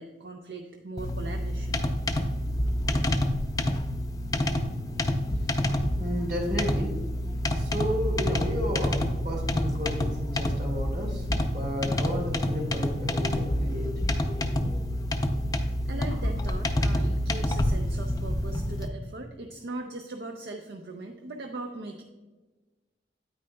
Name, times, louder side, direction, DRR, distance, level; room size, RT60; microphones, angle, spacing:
voice 1, 0.0-1.8 15.9-22.0, right 2 dB, 70° right, 4 dB, 0.6 m, -39 dB
sound 1, 1.0-18.9, left 1 dB, 20° left, 0.5 m, -28 dB
voice 2, 5.3-6.9 7.5-13.9, equal, 50° right, -1 dB, 2.3 m, -33 dB
9.4 x 8.7 x 2.2 m, 1.2 s
head